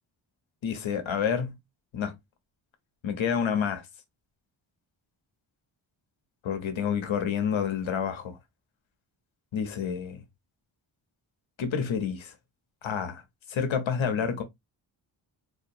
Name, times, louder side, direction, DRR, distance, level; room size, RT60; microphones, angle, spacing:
voice 1, 0.6-1.6 1.9-2.1 3.0-3.8 6.4-8.4 9.5-10.2 11.6-12.3 12.8-13.2 13.5-14.4, left 7 dB, 85° left, 1.0 m, -29 dB
4.2 x 2.9 x 2.6 m
wide cardioid pair, 155°, 46 cm